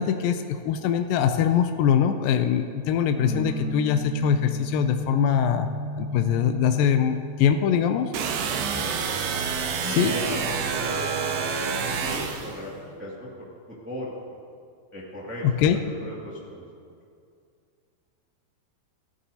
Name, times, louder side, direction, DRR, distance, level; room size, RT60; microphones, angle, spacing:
voice 1, 0.0-5.7 6.0-8.1 10.0-10.1 15.6-15.8, left 8 dB, 80° left, 7 dB, 2.2 m, -22 dB
sound 1, 3.2-12.9, right 1 dB, 50° right, 1.0 m, -36 dB
sound 2, 8.1-12.6, right 6 dB, 90° right, 2.7 m, -28 dB
voice 2, 9.8-14.4 14.9-16.6, equal, 5° right, -6 dB, 1.1 m, -38 dB
17.0 x 13.5 x 2.8 m, 2.4 s
omnidirectional pair, 4.1 m